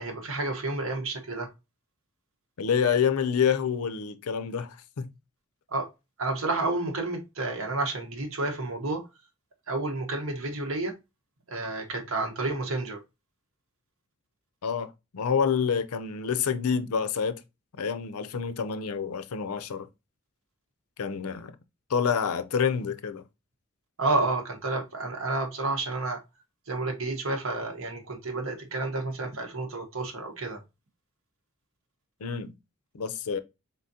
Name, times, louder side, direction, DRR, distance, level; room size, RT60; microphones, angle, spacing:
voice 1, 0.0-1.5 5.7-5.9 6.2-9.0 9.7-10.9 11.5-13.0 24.0-26.2 26.7-30.6, right 2 dB, 70° right, 1.1 m, -30 dB
voice 2, 2.6-5.1 14.6-17.4 17.7-19.9 21.0-21.5 21.9-23.2 32.2-32.5 32.9-33.4, left 7 dB, 85° left, 0.5 m, -28 dB
4.0 x 3.7 x 2.7 m
head